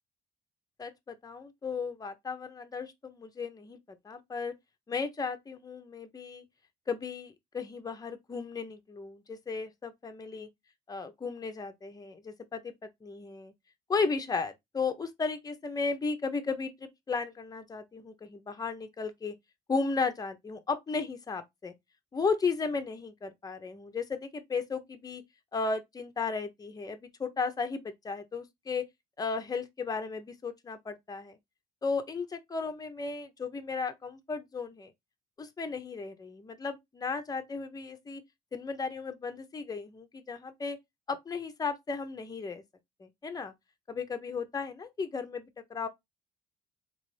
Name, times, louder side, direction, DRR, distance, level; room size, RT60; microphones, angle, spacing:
voice 1, 0.8-3.8 4.0-4.5 4.9-6.4 6.9-10.5 10.9-13.5 13.9-19.3 19.7-21.7 22.1-25.2 25.5-28.8 29.2-31.4 31.8-34.9 35.4-38.2 38.5-40.8 41.1-42.6 43.0-43.5 43.9-45.9, left 4 dB, 20° left, 0.7 m, -35 dB
4.0 x 3.0 x 3.2 m
cardioid pair, 110°, 17 cm